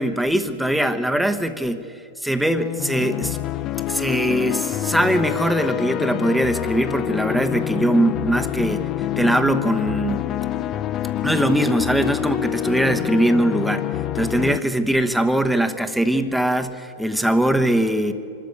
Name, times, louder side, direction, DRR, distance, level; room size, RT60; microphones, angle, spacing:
voice 1, 0.0-1.9 2.2-3.4 3.9-8.9 9.2-10.2 11.2-13.9 14.1-18.1, right 1 dB, ahead, 9 dB, 1.1 m, -21 dB
sound 1, 2.6-14.6, left 12 dB, 40° left, 0.6 m, -26 dB
24.0 x 13.0 x 8.5 m, 2.6 s
hypercardioid pair, 115°, 0 cm